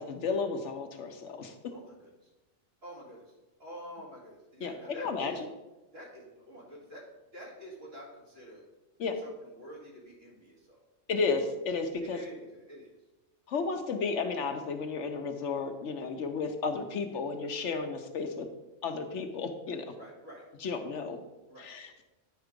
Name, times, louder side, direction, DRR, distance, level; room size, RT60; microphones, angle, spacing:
voice 1, 0.0-1.6 4.6-5.5 9.0-9.2 11.1-12.2 13.5-18.5 18.8-19.9 20.6-21.2 21.6-22.1, left 4 dB, 75° left, 6 dB, 1.1 m, -33 dB
voice 2, 1.7-2.1 2.8-3.3 3.6-5.4 5.9-7.1 7.3-8.6 9.2-10.8 12.0-12.9 19.9-20.5 21.5-21.7, equal, 55° right, -4 dB, 2.4 m, -48 dB
9.4 x 4.7 x 5.2 m, 1.1 s
omnidirectional pair, 1.3 m